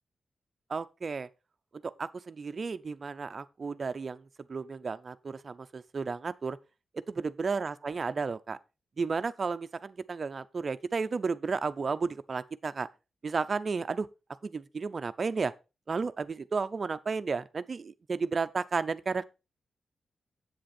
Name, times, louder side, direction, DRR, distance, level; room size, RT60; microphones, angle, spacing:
voice 1, 0.7-1.3 1.8-6.6 6.9-8.6 9.0-12.9 13.2-14.1 14.4-15.5 15.9-19.2, right 4 dB, 35° right, 0.5 m, -33 dB
7.9 x 7.8 x 4.2 m
wide cardioid pair, 170°, 0 cm